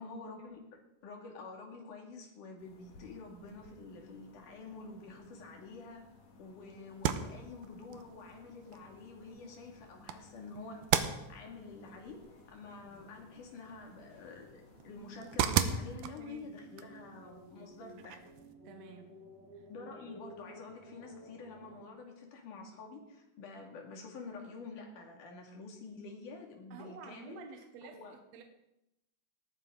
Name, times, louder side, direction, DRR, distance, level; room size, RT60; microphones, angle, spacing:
voice 1, 0.0-6.0 6.4-10.8 11.3-12.2 12.5-18.2 19.7-27.4 27.8-28.2, left 3 dB, 70° left, 1 dB, 3.8 m, -48 dB
sound 1, 2.6-16.0, left 3 dB, 55° left, 2.9 m, -60 dB
sound 2, 6.9-18.5, right 9 dB, 85° right, 2.5 m, -38 dB
sound 3, 7.8-21.9, right 1 dB, 15° left, 6.9 m, -57 dB
voice 2, 16.1-16.5 18.6-19.1 19.5-19.7 26.7-28.0 28.3-28.4, right 6 dB, 65° right, 4 dB, 2.1 m, -50 dB
19.5 x 14.0 x 3.9 m, 0.88 s
omnidirectional pair, 3.7 m